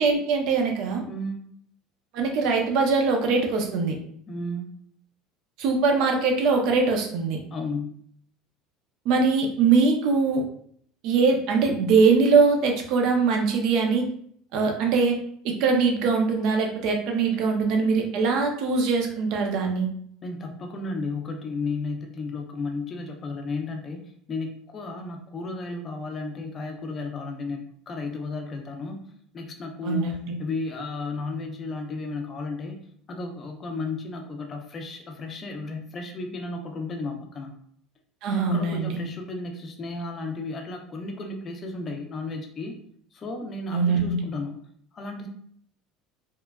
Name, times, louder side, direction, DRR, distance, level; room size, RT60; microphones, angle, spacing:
voice 1, 0.0-1.0 2.1-4.0 5.6-7.4 9.1-10.4 11.0-14.1 14.5-15.2 15.4-19.9 29.8-30.3 38.2-39.0 43.7-44.2, right 4 dB, 60° right, 3 dB, 0.5 m, -22 dB
voice 2, 1.1-1.4 4.3-4.7 7.5-8.0 20.2-24.0 24.3-29.0 29.3-32.8 33.1-37.5 38.3-42.8 43.1-44.6 44.9-45.3, left 3 dB, 25° left, 3 dB, 0.4 m, -33 dB
2.9 x 2.1 x 2.3 m, 0.63 s
cardioid pair, 150°, 0 cm